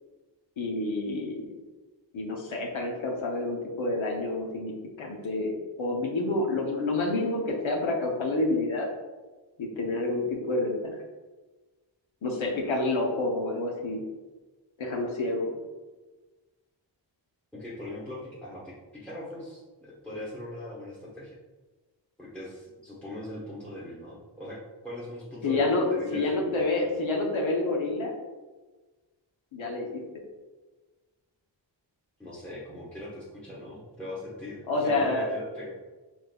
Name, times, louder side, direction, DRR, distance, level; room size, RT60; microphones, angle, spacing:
voice 1, 0.6-1.4 2.1-8.9 9.6-11.0 12.2-14.0 14.8-15.6 25.4-28.2 29.5-30.0 34.7-35.3, left 2 dB, 85° left, 0 dB, 0.8 m, -28 dB
voice 2, 17.5-21.3 22.2-26.8 32.2-35.7, left 1 dB, 5° left, -9 dB, 1.1 m, -40 dB
4.7 x 3.4 x 2.2 m, 1.3 s
wide cardioid pair, 70°, 46 cm